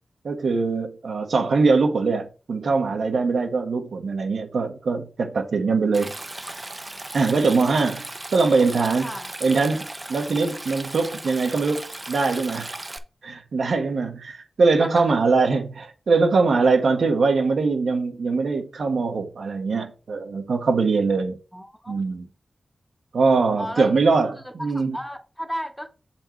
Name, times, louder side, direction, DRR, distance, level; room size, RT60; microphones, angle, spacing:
voice 1, 0.2-6.1 7.1-9.1 9.4-12.7 13.2-21.4 21.9-22.3 23.1-25.0, right 4 dB, 80° right, 1.2 m, -22 dB
Stream, 5.9-13.0, right 2 dB, 25° right, 0.7 m, -36 dB
voice 2, 14.8-15.2 21.5-21.9 23.6-24.0 24.3-25.9, equal, 5° left, 1.1 m, -34 dB
6.8 x 4.4 x 4.5 m
wide cardioid pair, 80°, 0 cm